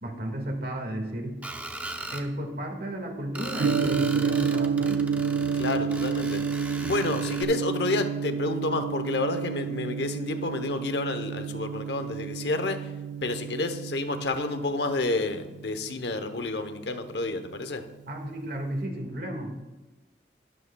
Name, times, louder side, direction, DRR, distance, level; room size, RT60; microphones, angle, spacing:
voice 1, 0.0-1.4 2.1-5.1 18.1-19.5, right 1 dB, 55° right, 3 dB, 1.8 m, -33 dB
Screech, 1.4-2.3 3.4-7.4, right 1 dB, 10° right, 0.7 m, -38 dB
Gong, 3.6-17.8, right 6 dB, 85° right, 0.4 m, -30 dB
voice 2, 5.5-6.4 6.9-12.9 13.2-17.8, left 2 dB, 70° left, 8 dB, 0.8 m, -29 dB
12.5 x 11.0 x 2.3 m, 1.1 s
head